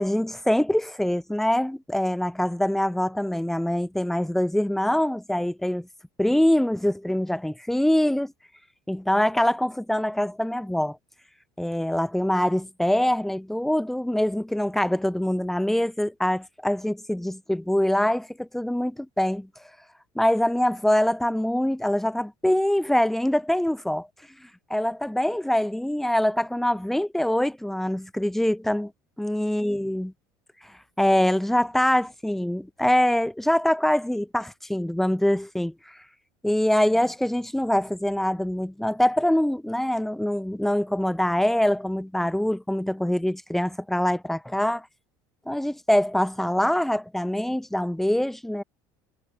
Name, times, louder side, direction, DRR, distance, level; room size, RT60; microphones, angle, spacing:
voice 1, 0.0-5.9 6.2-8.3 8.9-11.0 11.6-19.5 20.2-24.1 24.7-28.9 29.2-30.1 31.0-36.0 36.4-44.9 45.5-48.6, left 1 dB, 5° left, 6.9 m, -24 dB
supercardioid pair, 125°, 10 cm